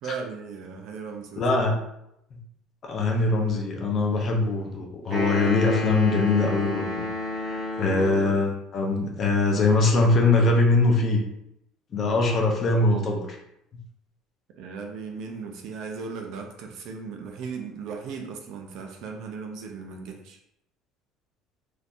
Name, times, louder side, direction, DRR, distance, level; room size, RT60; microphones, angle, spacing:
voice 1, 0.0-1.5 14.6-20.4, right 5 dB, 55° right, 3 dB, 0.5 m, -37 dB
voice 2, 1.4-1.8 2.3-2.4 2.8-7.1 7.4-11.2 11.9-13.4, left 3 dB, 30° left, 1 dB, 0.6 m, -22 dB
sound 1, 5.1-8.5, left 2 dB, 30° right, 1.4 m, -31 dB
3.7 x 2.8 x 2.5 m, 0.79 s
cardioid pair, 170°, 0 cm